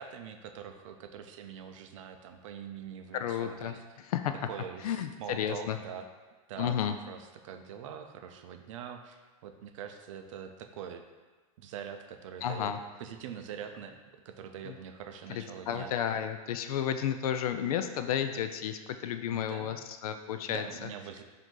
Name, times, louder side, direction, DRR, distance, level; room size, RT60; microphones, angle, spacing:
voice 1, 0.0-4.1 4.5-6.1 6.5-11.0 11.6-12.7 13.0-15.9 19.3-19.8 20.5-21.2, right 8 dB, 55° right, 6 dB, 0.4 m, -44 dB
voice 2, 3.1-4.3 4.8-5.8 6.6-6.9 12.4-12.8 14.6-14.7 15.3-19.8 20.0-20.6, left 9 dB, 70° left, 8 dB, 0.4 m, -32 dB
4.9 x 2.7 x 3.8 m, 1.3 s
supercardioid pair, 155°, 19 cm